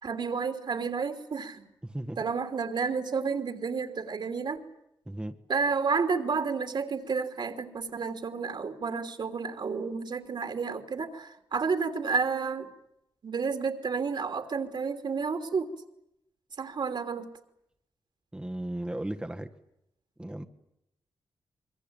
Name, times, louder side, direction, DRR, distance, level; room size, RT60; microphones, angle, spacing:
voice 1, 0.0-1.6 2.2-4.6 5.5-12.7 13.2-15.7 16.6-17.3, right 5 dB, 60° right, 7 dB, 3.1 m, -31 dB
voice 2, 1.8-2.2 5.1-5.4 18.3-19.5 20.2-20.4, right 1 dB, 10° right, 6 dB, 1.4 m, -35 dB
25.5 x 23.0 x 8.9 m, 0.82 s
cardioid pair, 85°, 9 cm